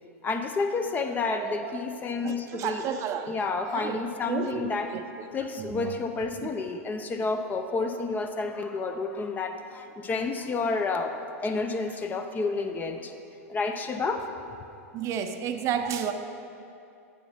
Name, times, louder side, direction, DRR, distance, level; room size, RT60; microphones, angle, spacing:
voice 1, 0.2-2.9 3.3-4.9 5.3-13.1 13.5-14.3, left 4 dB, 20° left, 7 dB, 0.5 m, -30 dB
voice 2, 1.4-1.8 2.2-5.0 5.6-5.9 6.4-6.5 14.9-16.1, right 8 dB, 40° right, 8 dB, 0.6 m, -32 dB
7.7 x 7.5 x 4.3 m, 2.6 s
hypercardioid pair, 110°, 8 cm